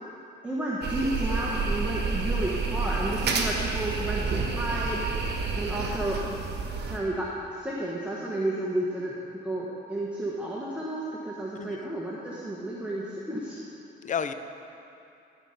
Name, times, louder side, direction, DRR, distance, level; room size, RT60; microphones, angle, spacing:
voice 1, 0.4-5.0 5.5-6.4 6.9-9.2 9.4-13.6, right 1 dB, 5° right, -5 dB, 1.2 m, -31 dB
sound 1, 0.8-7.0, right 4 dB, 55° right, 1.2 m, -29 dB
voice 2, 11.6-11.9 14.0-14.3, left 7 dB, 40° left, 10 dB, 0.6 m, -33 dB
13.0 x 5.2 x 5.7 m, 2.7 s
cardioid pair, 90°, 20 cm